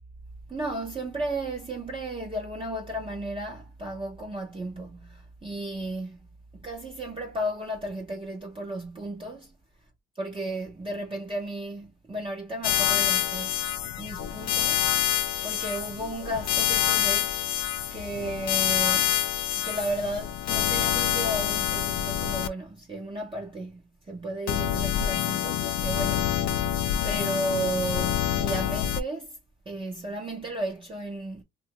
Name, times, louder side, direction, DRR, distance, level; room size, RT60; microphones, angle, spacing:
voice 1, 0.5-6.3 6.5-9.6 10.2-13.7 14.0-14.9 15.4-17.3 17.9-19.2 19.6-26.7 27.0-29.4 29.7-31.4, right 1 dB, 15° right, 0.6 m, -34 dB
sound 1, 12.6-22.5 24.5-29.0, left 12 dB, 60° left, 0.5 m, -27 dB
2.7 x 2.3 x 2.8 m
cardioid pair, 90°, 30 cm